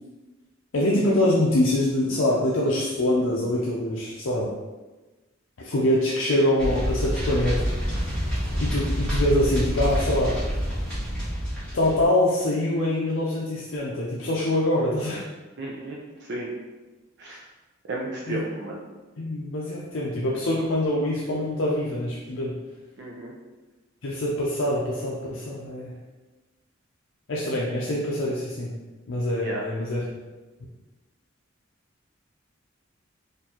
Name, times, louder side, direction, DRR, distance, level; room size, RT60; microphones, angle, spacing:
voice 1, 0.7-4.5 5.6-7.7 8.6-10.4 11.7-15.2 18.3-18.4 19.2-22.6 24.0-25.9 27.3-28.7 29.1-30.2, left 1 dB, 65° left, -5 dB, 0.5 m, -24 dB
sound 1, 6.6-12.0, equal, 5° left, 1.4 m, -27 dB
voice 2, 15.6-16.5 17.2-17.4 17.9-18.8 23.0-23.3 29.4-29.6, right 2 dB, 60° right, -3 dB, 0.5 m, -33 dB
4.4 x 2.5 x 2.9 m, 1.2 s
head